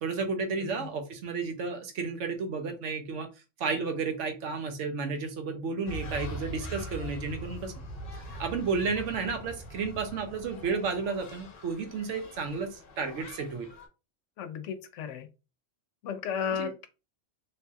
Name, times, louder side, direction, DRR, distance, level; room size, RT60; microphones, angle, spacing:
voice 1, 0.0-3.3 3.6-7.7 8.1-13.7 16.6-16.7, right 4 dB, 80° right, 1.0 m, -32 dB
voice 2, 0.6-0.9 14.4-15.3 16.0-16.9, left 7 dB, 80° left, 0.9 m, -34 dB
sound 1, 5.9-13.9, equal, 55° left, 0.9 m, -42 dB
3.0 x 2.7 x 2.3 m
omnidirectional pair, 1.2 m